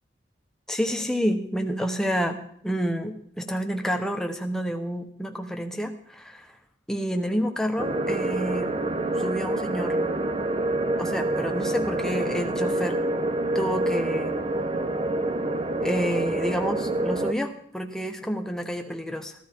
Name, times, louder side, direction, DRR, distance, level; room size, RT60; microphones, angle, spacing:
voice 1, 0.7-2.4 2.6-6.6 6.9-8.7 9.1-10.0 11.0-13.0 13.5-14.4 15.8-19.3, equal, 5° left, 4 dB, 1.0 m, -29 dB
sound 1, 7.8-17.3, right 2 dB, 30° right, 0.7 m, -27 dB
15.0 x 12.5 x 4.4 m, 0.68 s
head